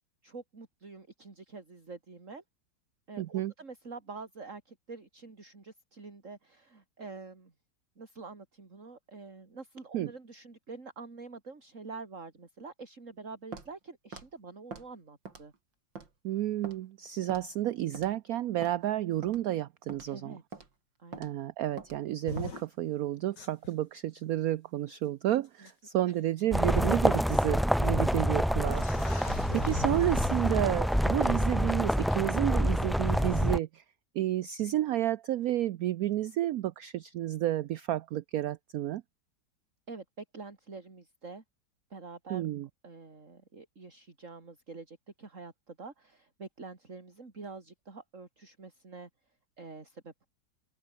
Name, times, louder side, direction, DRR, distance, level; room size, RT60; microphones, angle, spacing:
voice 1, 0.2-2.4 3.1-7.5 8.0-15.5 20.1-20.6 21.0-21.3 25.6-25.7 26.1-26.2 27.2-27.4 28.9-29.9 39.9-41.4 41.9-42.5 42.8-49.1 49.6-50.3, right 4 dB, 40° right, 3.5 m, -46 dB
voice 2, 3.2-3.5 9.9-10.1 16.2-20.4 21.2-28.9 29.1-29.3 29.5-33.8 34.1-39.0 42.3-42.7, right 13 dB, 65° right, 0.9 m, -31 dB
Walk footsteps, 13.5-13.7 14.1-14.3 14.7-14.9 15.3-15.6 16.0-16.1 16.6-16.8 17.3-17.5 17.9-18.1 18.6-18.8 19.2-19.4 19.9-20.1 20.5-20.7 21.1-21.3 21.8-22.0 22.4-22.5, right 4 dB, 90° right, 4.0 m, -44 dB
sound 1, 22.2-22.6 23.4-23.7 25.0-25.1 25.7-25.8 26.8-26.9 28.2-28.3 28.6-31.0 33.1-33.3, left 4 dB, 70° left, 3.9 m, -41 dB
sound 2, 26.5-33.6, equal, ahead, 0.9 m, -27 dB
open air
omnidirectional pair, 2.0 m